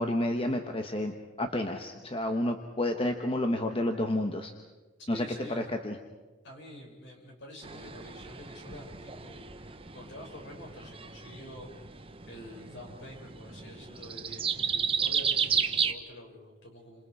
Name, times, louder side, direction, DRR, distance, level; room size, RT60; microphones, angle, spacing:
voice 1, 0.0-4.5 5.1-5.2 5.8-5.9, left 1 dB, 25° left, 5 dB, 1.2 m, -30 dB
voice 2, 5.1-5.6 6.4-17.1, left 1 dB, 60° left, 0 dB, 6.6 m, -47 dB
sound 1, 7.6-15.9, right 6 dB, 25° right, 1.0 m, -33 dB
29.5 x 26.5 x 4.9 m, 1.3 s
head